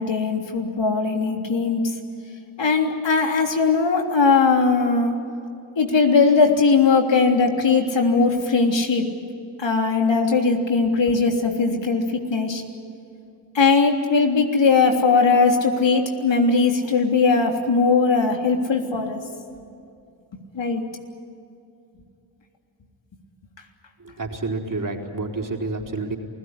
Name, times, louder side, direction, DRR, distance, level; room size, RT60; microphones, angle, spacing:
voice 1, 0.0-1.9 2.6-5.1 5.8-9.1 9.6-12.6 13.5-19.2 20.5-20.8, left 4 dB, 65° left, 2 dB, 3.4 m, -19 dB
voice 2, 24.0-26.2, right 3 dB, 40° right, 2 dB, 4.3 m, -29 dB
28.0 x 17.0 x 9.9 m, 2.5 s
supercardioid pair, 40°, 48 cm